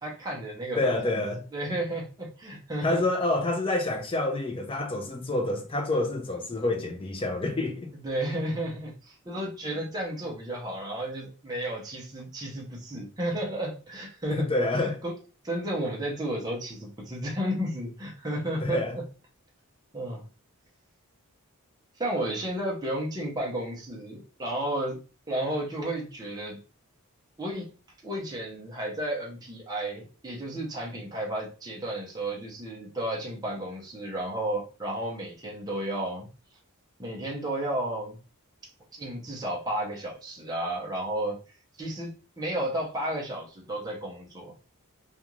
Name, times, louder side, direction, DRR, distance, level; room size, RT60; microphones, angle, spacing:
voice 1, 0.0-1.2 1.5-3.0 8.0-14.5 14.8-15.1 15.4-19.0 19.9-20.2 22.0-25.0 25.3-26.6 27.4-27.7 28.0-36.3 37.0-38.2 38.9-41.4 41.8-42.1 42.4-44.5, right 1 dB, 20° right, 0.7 m, -32 dB
voice 2, 0.8-1.4 2.8-7.9 14.3-15.0 18.6-19.0, left 2 dB, 25° left, 0.5 m, -28 dB
2.4 x 2.4 x 3.0 m
head